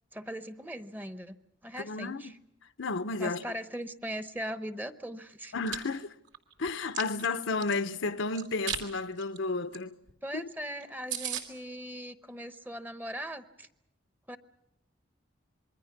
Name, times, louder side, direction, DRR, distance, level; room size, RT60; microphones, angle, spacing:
voice 1, 0.1-1.4 1.6-2.3 3.2-5.5 10.2-13.7 14.3-14.4, equal, 10° right, 0.9 m, -39 dB
voice 2, 1.8-2.3 2.8-3.4 5.5-6.1 6.6-9.9 10.3-10.4, left 3 dB, 80° left, 0.9 m, -32 dB
Chewing mastication, 5.4-5.8 6.3-7.8 8.3-8.8 9.2-9.4 9.7-9.8 10.1-10.2 10.5-10.6 10.8-10.9 11.1-11.4, right 9 dB, 75° right, 2.9 m, -35 dB
27.0 x 22.0 x 5.9 m
head